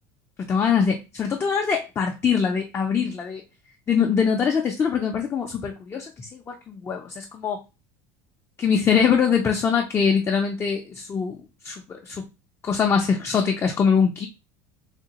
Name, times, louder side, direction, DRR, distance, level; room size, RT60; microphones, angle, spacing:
voice 1, 0.4-3.4 3.9-7.6 8.6-11.4 11.6-12.3 12.6-14.3, left 6 dB, 20° left, 0.4 m, -23 dB
3.5 x 2.3 x 2.9 m
cardioid pair, 145°, 13 cm